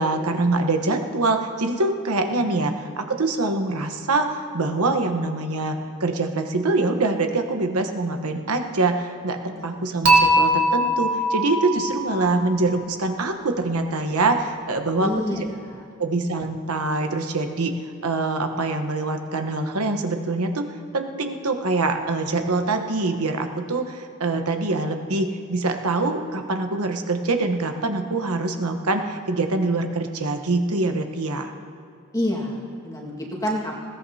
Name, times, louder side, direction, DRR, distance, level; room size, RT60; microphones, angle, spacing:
voice 1, 0.0-15.4 16.0-17.7 18.0-20.6 20.9-31.5, right 2 dB, 85° right, 5 dB, 1.1 m, -24 dB
voice 2, 2.3-2.8 9.5-9.8 15.0-15.8 32.1-33.7, equal, 15° left, -3 dB, 1.8 m, -29 dB
Dishes pots and pans / Chink clink, 10.1-13.2, right 1 dB, 60° right, 2.3 m, -21 dB
20.0 x 17.0 x 2.8 m, 2.5 s
head